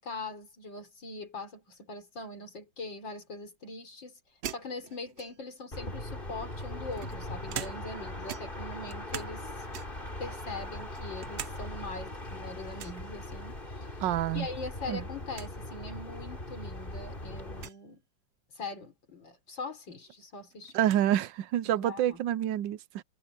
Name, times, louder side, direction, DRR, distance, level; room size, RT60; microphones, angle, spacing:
voice 1, 0.0-4.2 4.5-9.7 10.2-13.9 14.3-18.0 18.5-20.7 21.8-22.2, left 3 dB, 80° left, 5.0 m, -42 dB
sound 1, 4.4-5.6 6.4-8.0 8.3-9.4 9.7-10.1 10.6-11.6 11.9-12.0 12.8-13.0 14.5-14.8 15.1-15.2 15.3-15.5 16.3-16.4 17.5-17.8 19.5-19.6 19.9-21.1, right 9 dB, 60° right, 0.7 m, -42 dB
sound 2, 5.7-17.7, left 1 dB, 25° left, 4.1 m, -40 dB
voice 2, 14.0-14.5 14.9-15.0 20.7-23.0, right 11 dB, 80° right, 1.3 m, -28 dB
omnidirectional pair, 2.0 m